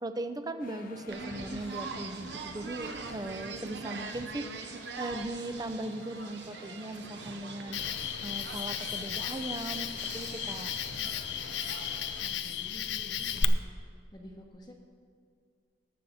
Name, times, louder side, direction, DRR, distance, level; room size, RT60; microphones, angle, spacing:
voice 1, 0.0-4.5 5.0-7.8 8.2-10.7, right 1 dB, 20° right, 9 dB, 0.6 m, -38 dB
sound 1, 0.6-12.0, left 2 dB, 50° left, 1.0 m, -52 dB
sound 2, 1.1-12.3, right 4 dB, 70° right, 0.9 m, -43 dB
Cricket, 7.7-13.4, left 8 dB, 75° left, 0.5 m, -35 dB
voice 2, 12.2-13.6 14.1-14.8, equal, 25° left, -3 dB, 1.0 m, -49 dB
19.0 x 7.0 x 4.2 m, 2.2 s
head